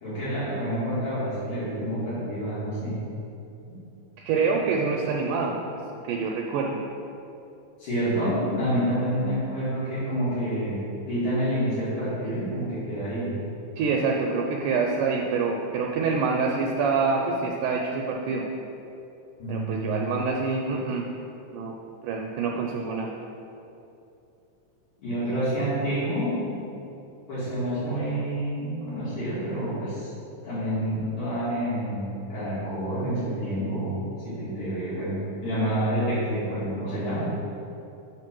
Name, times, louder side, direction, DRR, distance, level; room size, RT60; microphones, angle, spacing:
voice 1, 0.0-3.0 3.7-3.8 7.8-10.8 11.1-13.3 19.4-19.9 25.0-26.6 27.3-30.1 30.4-37.3, equal, 65° left, -12 dB, 3.3 m, -28 dB
voice 2, 4.3-5.6 6.1-6.7 13.8-18.4 19.5-21.0 21.5-21.7 22.0-23.1, right 4 dB, 80° right, 0 dB, 2.0 m, -26 dB
9.0 x 3.2 x 6.0 m, 2.8 s
omnidirectional pair, 3.9 m